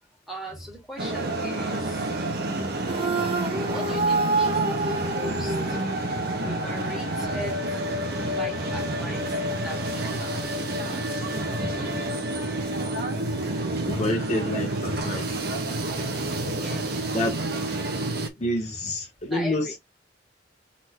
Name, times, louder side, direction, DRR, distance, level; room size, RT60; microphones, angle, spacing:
voice 1, 0.3-2.1 3.7-6.0 6.4-7.8 8.2-11.4 13.6-13.9 15.7-15.9 16.1-17.1 18.4-18.5 19.3-19.8, right 1 dB, ahead, 2.2 m, -40 dB
sound 1, 1.0-18.3, right 1 dB, 60° right, 1.2 m, -29 dB
sound 2, 2.9-6.3, right 3 dB, 30° right, 0.8 m, -27 dB
voice 2, 13.9-15.3 17.1-17.3 18.4-19.8, left 1 dB, 40° left, 1.4 m, -28 dB
4.1 x 3.9 x 3.2 m
head